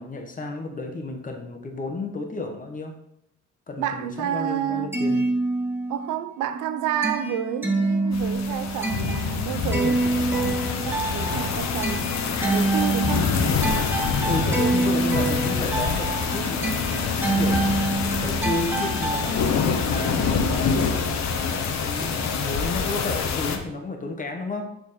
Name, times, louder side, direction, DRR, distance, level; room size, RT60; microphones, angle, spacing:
voice 1, 0.0-3.0 3.7-5.3 14.2-20.7 21.5-24.6, left 2 dB, 25° left, 1.2 m, -32 dB
voice 2, 3.8-5.0 5.9-12.1 12.4-13.3, right 11 dB, 90° right, 0.6 m, -30 dB
sound 1, 4.7-6.1 6.5-19.3, right 2 dB, 5° right, 1.6 m, -26 dB
sound 2, 8.1-23.6, left 5 dB, 65° left, 1.0 m, -26 dB
6.7 x 4.6 x 4.2 m
cardioid pair, 90°, 30 cm